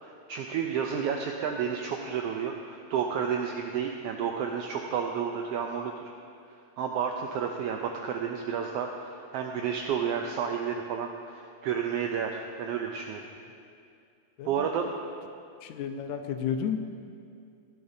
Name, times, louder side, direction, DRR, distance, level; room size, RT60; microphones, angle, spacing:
voice 1, 0.0-5.9 6.8-13.2 14.4-14.9, right 7 dB, 85° right, 2 dB, 1.3 m, -31 dB
voice 2, 14.4-14.8 15.6-16.8, left 8 dB, 80° left, 6 dB, 2.0 m, -32 dB
17.0 x 10.5 x 2.7 m, 2.4 s
omnidirectional pair, 3.3 m